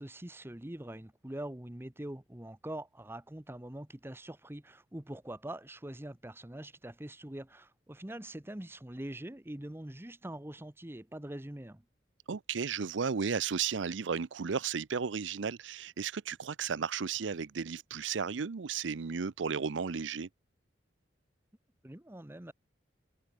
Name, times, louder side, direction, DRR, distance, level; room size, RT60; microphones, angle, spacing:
voice 1, 0.0-11.8 21.8-22.5, right 1 dB, 15° right, 0.9 m, -43 dB
voice 2, 12.3-20.3, right 6 dB, 75° right, 0.6 m, -34 dB
head